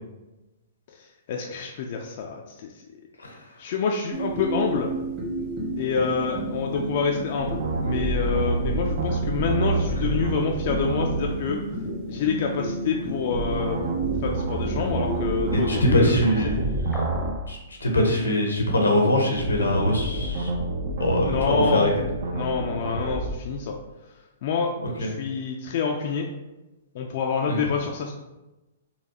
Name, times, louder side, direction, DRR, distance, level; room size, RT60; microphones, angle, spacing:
voice 1, 1.3-2.7 3.6-4.9 5.8-11.6 12.1-13.8 14.2-16.5 21.2-21.9 22.3-23.8 24.4-24.7 25.0-26.3 26.9-28.1, left 5 dB, 50° left, 1 dB, 0.3 m, -27 dB
sound 1, 4.1-16.1, right 2 dB, 30° right, 1.1 m, -32 dB
sound 2, 7.4-11.3 13.3-17.3 19.3-23.3, right 3 dB, 60° right, 0.5 m, -28 dB
voice 2, 15.5-16.8 17.5-20.5 21.0-21.9 24.8-25.1 27.5-27.6, left 1 dB, 85° left, 1 dB, 0.8 m, -23 dB
sound 3, 16.9-17.5, equal, 5° left, 0.7 m, -33 dB
4.0 x 2.3 x 2.8 m, 1.0 s
hypercardioid pair, 120°, 0 cm